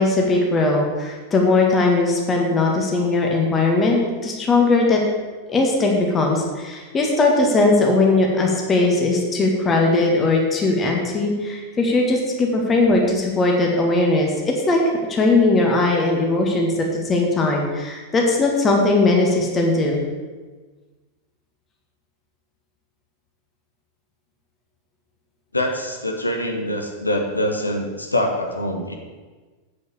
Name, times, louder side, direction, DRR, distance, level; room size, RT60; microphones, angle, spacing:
voice 1, 0.0-5.0 5.5-14.8 15.1-20.0, left 2 dB, 20° left, 0 dB, 1.8 m, -19 dB
voice 2, 25.5-28.9, left 1 dB, 85° left, 2 dB, 1.4 m, -24 dB
8.0 x 6.3 x 7.0 m, 1.4 s
figure-of-eight pair, 90°, 0 cm